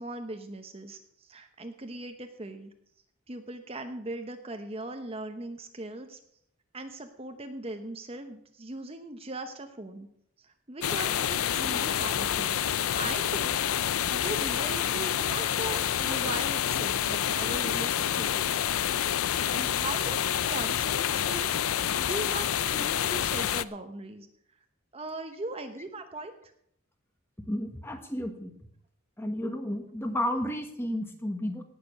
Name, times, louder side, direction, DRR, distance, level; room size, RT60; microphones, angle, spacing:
voice 1, 0.0-2.7 3.3-6.2 6.7-10.1 10.4-18.5 18.8-19.0 19.5-20.2 20.5-21.7 22.0-24.3 24.9-26.3, right 2 dB, 25° right, 6 dB, 0.9 m, -39 dB
sound 1, 10.8-23.6, left 10 dB, 85° left, 0.5 m, -28 dB
voice 2, 27.5-28.5 29.2-31.6, left 1 dB, 10° left, 6 dB, 1.4 m, -32 dB
18.0 x 6.8 x 6.6 m, 0.71 s
head